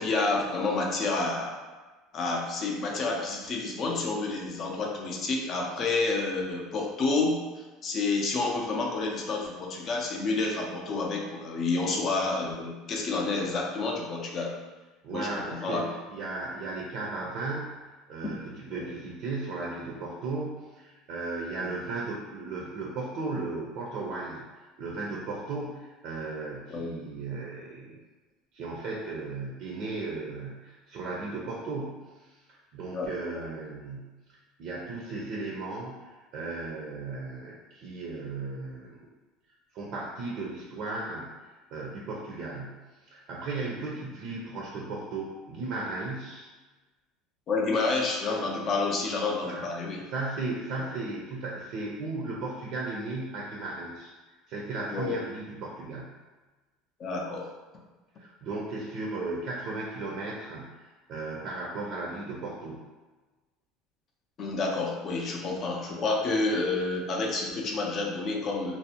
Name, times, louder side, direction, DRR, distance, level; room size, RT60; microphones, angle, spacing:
voice 1, 0.0-1.6 2.1-7.4 7.8-14.6 15.1-15.9 18.7-18.9 21.6-21.7 26.7-26.9 32.9-33.1 47.5-50.0 54.9-55.2 57.0-57.5 64.4-68.8, left 3 dB, 40° left, 0 dB, 0.5 m, -29 dB
voice 2, 15.0-28.0 28.5-34.2 34.6-39.1 39.7-41.3 41.7-46.5 49.4-49.6 50.1-54.1 54.5-56.2 58.2-62.9, right 3 dB, 60° right, -3 dB, 0.4 m, -36 dB
2.5 x 2.0 x 2.7 m, 1.2 s
supercardioid pair, 115°, 0 cm